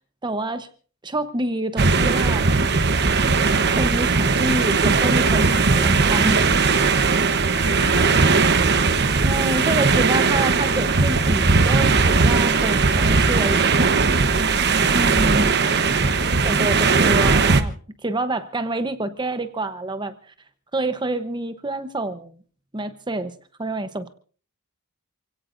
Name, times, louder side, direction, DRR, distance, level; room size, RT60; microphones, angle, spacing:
voice 1, 0.2-0.7 1.0-2.7 3.5-6.4 9.2-14.0 14.9-15.5 16.4-17.7 18.0-20.1 20.7-22.4 22.7-24.1, right 2 dB, 20° right, 10 dB, 0.9 m, -27 dB
sound 1, 1.8-17.6, right 4 dB, 50° right, 1.0 m, -18 dB
voice 2, 7.5-9.4 15.0-15.1 15.7-16.5, left 2 dB, 75° left, 4 dB, 6.2 m, -36 dB
28.5 x 17.0 x 2.6 m, 0.40 s
head